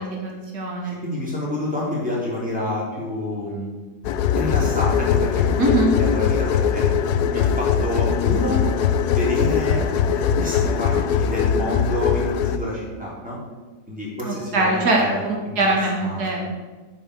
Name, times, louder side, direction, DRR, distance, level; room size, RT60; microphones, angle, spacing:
voice 1, 0.0-1.0 5.6-5.9 14.2-16.5, right 2 dB, 90° right, -1 dB, 2.4 m, -22 dB
voice 2, 1.0-3.7 4.3-6.9 7.3-8.7 9.1-9.8 10.1-13.4 13.9-15.2 15.5-16.4, left 1 dB, 5° right, -7 dB, 3.5 m, -28 dB
sound 1, 4.0-12.6, left 7 dB, 90° left, 1.2 m, -21 dB
8.6 x 5.4 x 8.0 m, 1.3 s
omnidirectional pair, 1.7 m